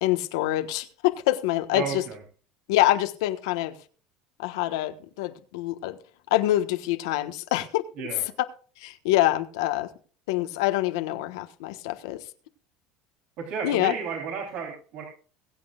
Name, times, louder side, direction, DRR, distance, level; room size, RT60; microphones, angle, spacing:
voice 1, 0.0-2.0 2.7-3.7 4.4-6.0 6.3-8.1 8.8-9.9 10.3-12.2 13.6-13.9, left 15 dB, 85° left, 1.3 m, -25 dB
voice 2, 1.7-2.2 8.0-8.2 13.4-15.0, right 6 dB, 65° right, 3.5 m, -33 dB
22.0 x 8.7 x 2.4 m
supercardioid pair, 115°, 2 cm